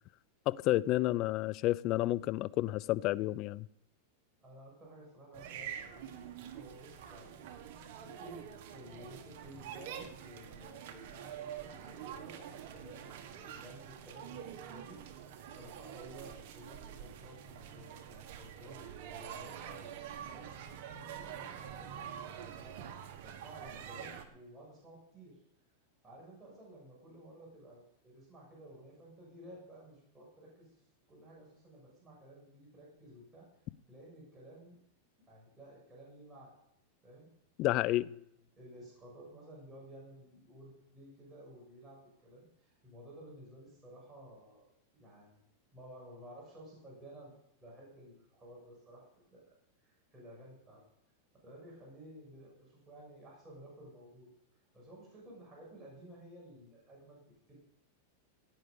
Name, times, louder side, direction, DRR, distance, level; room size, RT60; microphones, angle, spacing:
voice 1, 0.5-3.7 37.6-38.1, left 16 dB, 45° left, 0.5 m, -30 dB
voice 2, 4.4-6.3 6.5-7.4 8.0-8.4 8.7-15.0 15.4-20.5 20.9-21.9 22.2-25.4 26.0-30.7 31.1-33.5 33.9-34.8 35.3-36.6 37.0-37.3 37.8-38.2 38.6-45.4 45.7-47.3 47.6-49.4 49.8-50.8 51.4-54.3 54.7-57.2 57.5-57.6, right 1 dB, 15° right, 6.7 m, -54 dB
sound 1, 5.3-24.3, right 9 dB, 60° right, 1.7 m, -46 dB
16.5 x 9.4 x 5.3 m
supercardioid pair, 130°, 0 cm